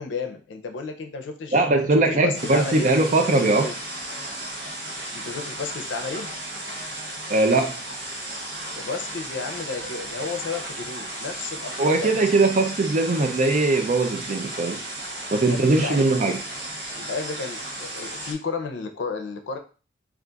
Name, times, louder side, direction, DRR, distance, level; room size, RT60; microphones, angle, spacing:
voice 1, 0.0-2.9 3.3-3.7 5.1-6.3 8.8-12.5 15.5-16.1 17.0-19.6, left 4 dB, 80° left, 5 dB, 0.5 m, -32 dB
voice 2, 1.5-3.7 7.3-7.8 11.8-14.8 15.3-16.4, right 2 dB, 40° right, 5 dB, 0.4 m, -20 dB
sound 1, 2.3-18.3, right 1 dB, 60° right, 0.9 m, -35 dB
2.4 x 2.3 x 3.8 m, 0.36 s
head